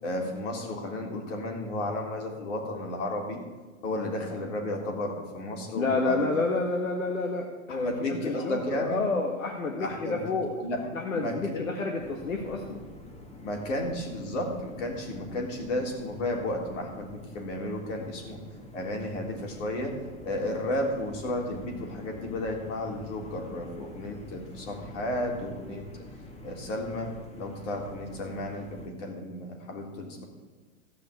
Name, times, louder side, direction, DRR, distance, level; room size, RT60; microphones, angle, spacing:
voice 1, 0.0-3.4 3.8-6.3 7.7-9.0 9.8-10.3 10.6-10.9 11.1-11.7 13.4-18.4 18.7-20.0 20.2-25.9 26.4-27.1 27.4-30.3, left 1 dB, 65° left, 1 dB, 3.6 m, -33 dB
voice 2, 5.7-10.5 10.9-12.8, left 3 dB, 85° left, 1 dB, 1.6 m, -29 dB
sound 1, 12.0-28.9, left 1 dB, 15° left, 2.1 m, -46 dB
15.0 x 5.8 x 9.0 m, 1.3 s
hypercardioid pair, 105°, 40 cm